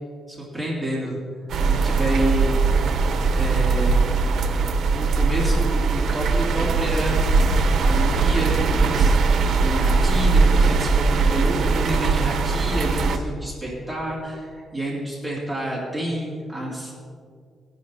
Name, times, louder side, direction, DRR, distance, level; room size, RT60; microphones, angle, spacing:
voice 1, 0.3-1.2 1.7-2.5 3.3-4.0 4.9-7.2 7.8-9.2 9.6-16.9, right 1 dB, 5° right, -6 dB, 2.2 m, -29 dB
sound 1, 1.5-13.2, right 4 dB, 65° right, 0.9 m, -20 dB
19.5 x 10.5 x 2.7 m, 2.2 s
cardioid pair, 145°, 0 cm